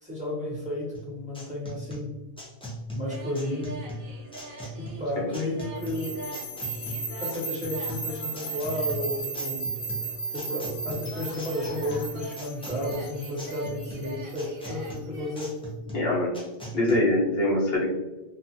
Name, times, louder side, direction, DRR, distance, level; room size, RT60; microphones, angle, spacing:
voice 1, 0.0-2.2 2.9-3.8 4.8-6.1 7.2-9.6 10.3-15.5, left 1 dB, 5° right, -7 dB, 0.9 m, -32 dB
sound 1, 0.9-17.0, equal, 10° left, 0.3 m, -40 dB
sound 2, 3.1-15.3, right 2 dB, 65° right, 0.8 m, -43 dB
sound 3, 5.8-14.9, right 3 dB, 35° left, 1.1 m, -35 dB
voice 2, 15.9-16.4 16.7-17.9, left 1 dB, 65° left, -5 dB, 1.0 m, -24 dB
2.5 x 2.3 x 2.6 m, 1.1 s
omnidirectional pair, 1.1 m